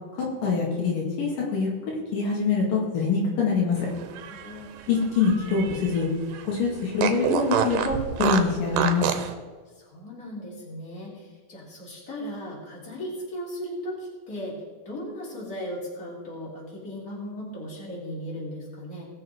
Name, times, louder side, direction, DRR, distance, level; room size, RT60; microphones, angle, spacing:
voice 1, 0.4-1.7 2.1-3.8 4.9-6.1 6.4-9.0, left 5 dB, 80° left, -3 dB, 3.8 m, -24 dB
voice 2, 4.0-4.7 9.8-14.5 14.9-19.1, equal, 25° left, -5 dB, 3.8 m, -37 dB
Fart, 4.0-6.0 6.3-6.4 7.0-9.3, right 8 dB, 85° right, 2.5 m, -27 dB
19.5 x 6.6 x 4.6 m, 1.5 s
omnidirectional pair, 3.8 m